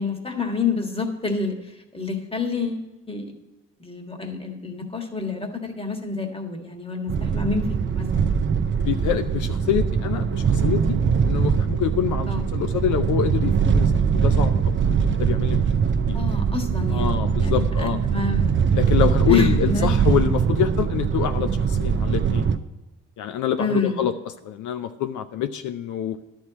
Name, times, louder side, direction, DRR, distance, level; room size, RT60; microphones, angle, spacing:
voice 1, 0.0-1.6 1.9-3.3 3.8-8.3 12.3-12.5 16.1-18.5 19.3-20.6 23.6-24.0, left 4 dB, 20° left, 4 dB, 1.6 m, -28 dB
sound 1, 7.1-22.6, right 6 dB, 40° right, 0.6 m, -22 dB
voice 2, 8.7-14.7 15.1-15.6 16.1-16.2 16.9-18.0 18.7-22.5 23.2-24.1 24.4-26.2, left 10 dB, 80° left, 9 dB, 0.6 m, -26 dB
11.0 x 4.6 x 8.1 m, 1.1 s
cardioid pair, 90°, 30 cm